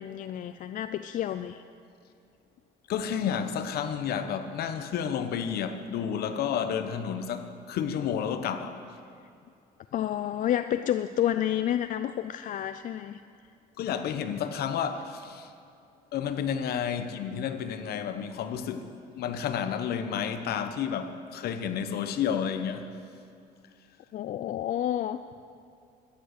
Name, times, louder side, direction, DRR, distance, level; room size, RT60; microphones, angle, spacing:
voice 1, 0.0-1.6 9.9-13.2 24.1-25.2, left 11 dB, 50° left, 0.4 m, -30 dB
voice 2, 2.9-9.0 13.8-15.5 16.1-22.9, left 8 dB, 70° left, 1.0 m, -31 dB
13.0 x 10.5 x 6.7 m
cardioid pair, 110°, 17 cm